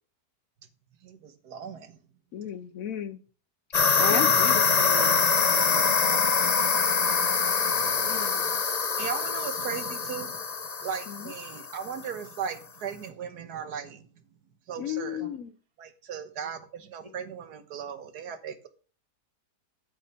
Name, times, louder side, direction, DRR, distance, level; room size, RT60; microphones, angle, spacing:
voice 1, 1.0-2.0 4.1-4.3 7.2-8.6 9.0-10.4 10.8-14.1 14.7-15.2 15.8-18.7, right 7 dB, 70° right, 1.7 m, -38 dB
voice 2, 2.3-3.2 3.7-4.9 8.0-8.5 11.1-11.3 14.7-15.5, left 9 dB, 65° left, 0.9 m, -34 dB
sound 1, 3.7-11.9, left 5 dB, 40° left, 0.6 m, -24 dB
voice 3, 4.8-6.4 15.2-15.3, right 2 dB, 25° right, 1.4 m, -43 dB
8.6 x 5.7 x 5.8 m
omnidirectional pair, 1.8 m